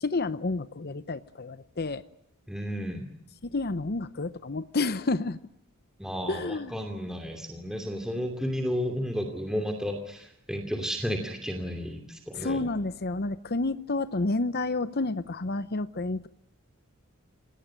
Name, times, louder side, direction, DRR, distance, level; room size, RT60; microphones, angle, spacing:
voice 1, 0.0-2.0 3.4-5.4 6.3-6.8 12.3-16.3, left 3 dB, 45° left, 13 dB, 0.9 m, -30 dB
voice 2, 2.5-3.1 6.0-12.6, equal, 5° right, 4 dB, 2.7 m, -32 dB
27.5 x 19.0 x 8.8 m, 0.78 s
head